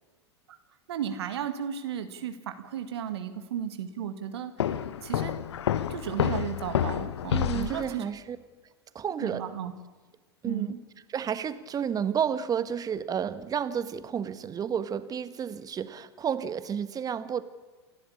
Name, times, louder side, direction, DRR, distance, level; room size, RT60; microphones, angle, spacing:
voice 1, 0.9-4.7 5.0-5.3 5.9-8.0 9.2-9.7 10.5-10.8, right 9 dB, 70° right, 8 dB, 2.0 m, -34 dB
Walk footsteps, 4.6-7.9, left 10 dB, 75° left, 1.1 m, -29 dB
voice 2, 7.3-8.4 8.9-9.4 10.4-10.8 11.1-17.4, right 8 dB, 25° right, 13 dB, 1.5 m, -31 dB
29.0 x 12.5 x 8.8 m, 1.3 s
hypercardioid pair, 90°, 14 cm